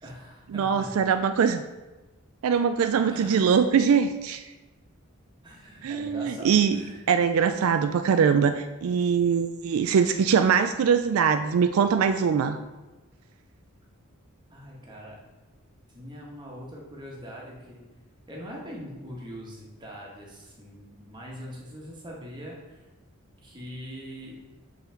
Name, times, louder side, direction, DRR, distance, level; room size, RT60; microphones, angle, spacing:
voice 1, 0.0-0.9 3.1-3.5 5.4-7.0 14.5-15.2 15.9-17.8 18.3-22.9 23.4-24.4, equal, 20° right, -3 dB, 1.3 m, -42 dB
voice 2, 0.5-1.6 2.4-4.4 5.8-6.8 7.1-12.6, right 6 dB, 75° right, 9 dB, 0.3 m, -22 dB
5.6 x 4.1 x 5.7 m, 1.1 s
head